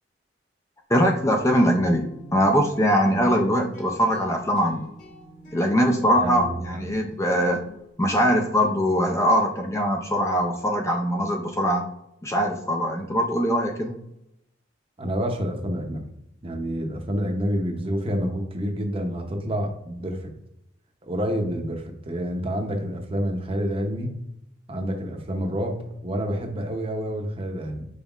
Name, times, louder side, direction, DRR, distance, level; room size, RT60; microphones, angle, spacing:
voice 1, 0.9-4.9 5.5-7.6 8.0-11.8 12.2-14.0, equal, 15° left, 2 dB, 0.4 m, -22 dB
sound 1, 1.4-7.9, equal, 45° left, 1.6 m, -45 dB
voice 2, 6.1-6.9 15.0-16.1 16.4-20.3 21.0-24.1 24.7-27.9, equal, 30° right, 4 dB, 0.7 m, -28 dB
5.4 x 3.9 x 2.4 m, 0.80 s
head